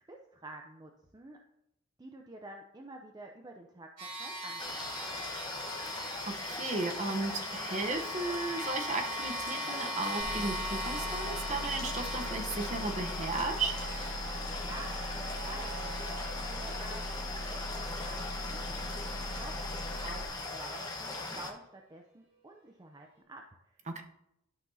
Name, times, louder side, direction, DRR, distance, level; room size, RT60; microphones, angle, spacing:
voice 1, 0.1-1.4 2.0-3.9 4.2-4.9 14.3-17.2 17.5-23.8, right 2 dB, 20° right, 2 dB, 0.5 m, -49 dB
sound 1, 4.0-17.6, right 1 dB, 65° right, 3.2 m, -42 dB
sound 2, 4.6-21.5, left 3 dB, 20° left, 1.0 m, -40 dB
voice 2, 5.9-13.7 23.9-24.0, right 3 dB, 35° right, 4 dB, 0.9 m, -35 dB
sound 3, 10.2-20.2, equal, 35° left, 2.0 m, -40 dB
12.0 x 5.8 x 2.7 m, 0.82 s
head